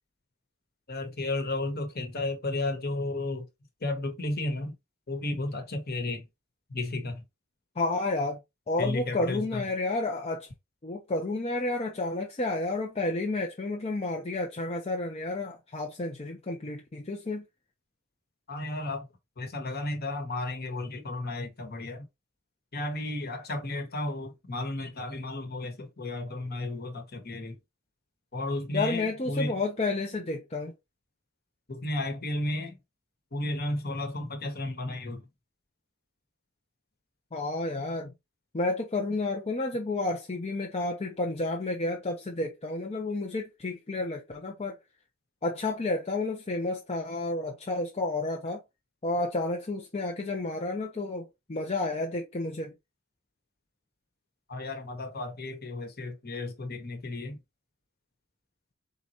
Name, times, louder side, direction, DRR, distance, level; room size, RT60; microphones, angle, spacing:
voice 1, 0.9-3.5 3.8-4.7 5.1-6.3 6.7-7.2 8.8-9.6 18.5-19.1 19.4-22.1 22.7-27.6 28.3-29.6 31.7-32.8 33.3-35.3 54.5-57.4, left 2 dB, 50° left, 1.3 m, -33 dB
voice 2, 7.8-10.5 10.8-17.4 28.7-30.7 37.3-38.1 38.5-44.8 45.4-48.6 49.0-52.7, left 2 dB, 30° left, 0.7 m, -31 dB
4.3 x 3.8 x 2.9 m
head